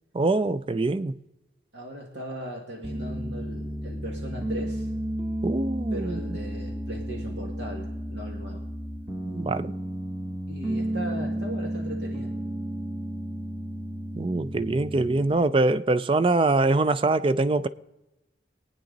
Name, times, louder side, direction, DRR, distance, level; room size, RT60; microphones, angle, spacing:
voice 1, 0.1-1.2 5.4-6.2 9.3-9.7 14.2-17.7, right 2 dB, 30° right, 0.4 m, -24 dB
voice 2, 1.7-4.9 5.9-8.7 10.5-12.3, equal, 65° right, 1.9 m, -38 dB
Piano, 2.8-15.3, right 1 dB, 10° right, 1.2 m, -32 dB
23.0 x 9.2 x 3.9 m
head